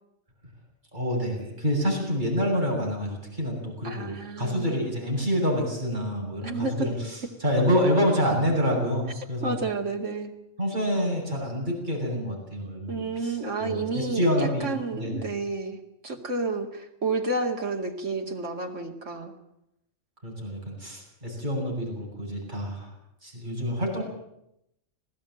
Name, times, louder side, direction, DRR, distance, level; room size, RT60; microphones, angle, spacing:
voice 1, 0.9-9.6 10.6-15.2 20.2-22.9 23.2-24.0, equal, 40° right, -2 dB, 7.9 m, -27 dB
voice 2, 3.8-4.8 6.4-6.9 9.4-10.3 12.9-15.8 16.0-19.3, right 3 dB, 75° right, 3 dB, 2.7 m, -30 dB
19.5 x 16.5 x 9.1 m, 0.81 s
omnidirectional pair, 1.3 m